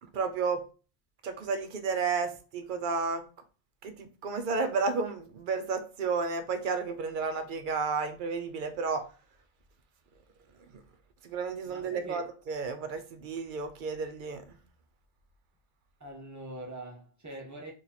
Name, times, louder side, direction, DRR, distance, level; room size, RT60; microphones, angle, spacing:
voice 1, 0.0-0.6 1.2-3.2 3.8-9.1 11.2-14.4, right 4 dB, 60° right, 0.6 m, -32 dB
voice 2, 11.6-12.2 16.0-17.7, right 1 dB, 20° right, 0.7 m, -43 dB
2.9 x 2.6 x 3.9 m
omnidirectional pair, 1.0 m